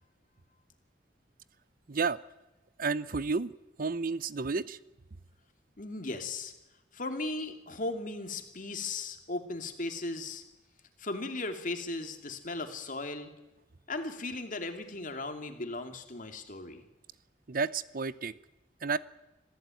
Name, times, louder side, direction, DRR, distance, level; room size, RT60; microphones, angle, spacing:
voice 1, 1.9-2.2 2.8-3.5 3.8-4.8 17.5-18.3 18.8-19.0, right 4 dB, 55° right, 17 dB, 0.7 m, -31 dB
voice 2, 5.8-6.5 6.9-10.4 11.0-13.3 13.9-16.8, left 2 dB, 50° left, 6 dB, 2.7 m, -37 dB
26.0 x 15.0 x 9.2 m, 0.99 s
head